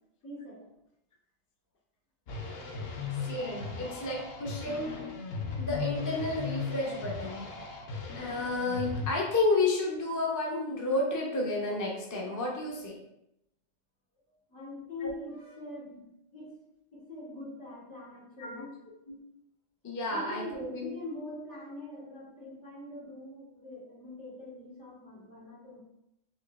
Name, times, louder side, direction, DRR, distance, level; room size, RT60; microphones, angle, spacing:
voice 1, 0.2-0.6 3.8-4.0 14.5-16.1 16.3-16.5 16.9-18.7 20.1-25.8, left 2 dB, 80° left, -8 dB, 2.0 m, -43 dB
sound 1, 2.3-9.1, left 5 dB, 65° left, 0.8 m, -37 dB
voice 2, 3.2-5.0 5.6-7.5 8.2-13.0 15.0-15.1 18.4-18.6 19.1-19.2 19.8-20.9, left 2 dB, 20° left, -2 dB, 0.5 m, -31 dB
4.5 x 2.8 x 2.4 m, 0.82 s
omnidirectional pair, 1.2 m